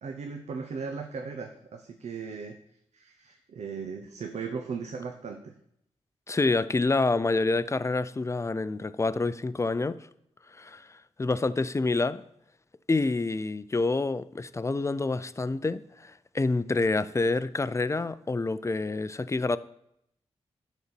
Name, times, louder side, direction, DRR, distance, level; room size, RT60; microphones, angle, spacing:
voice 1, 0.0-2.6 2.9-5.5, right 5 dB, 75° right, 5 dB, 0.8 m, -37 dB
voice 2, 6.3-10.0 10.5-12.2 12.9-19.6, left 3 dB, 25° left, 15 dB, 0.5 m, -27 dB
11.0 x 4.1 x 7.0 m, 0.75 s
cardioid pair, 65°, 11 cm